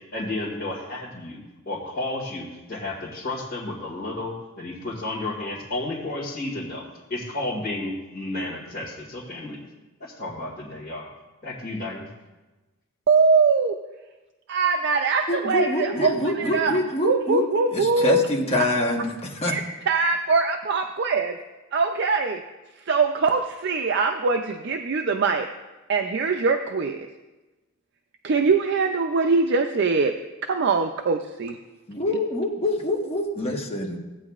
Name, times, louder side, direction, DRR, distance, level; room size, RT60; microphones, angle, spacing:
voice 1, 0.1-1.4 1.7-9.6 10.0-11.1 11.4-12.1, left 2 dB, 45° left, -6 dB, 1.9 m, -32 dB
voice 2, 13.1-13.8 14.5-16.7 17.0-18.3 18.6-18.7 19.5-19.6 19.9-21.4 21.7-22.4 22.9-25.5 25.9-27.1 28.2-30.2 30.4-31.6, right 4 dB, 55° right, 5 dB, 0.4 m, -22 dB
voice 3, 15.3-17.4 17.7-19.6 31.9-34.0, left 1 dB, 30° left, 0 dB, 1.2 m, -25 dB
15.5 x 8.8 x 2.4 m, 1.1 s
head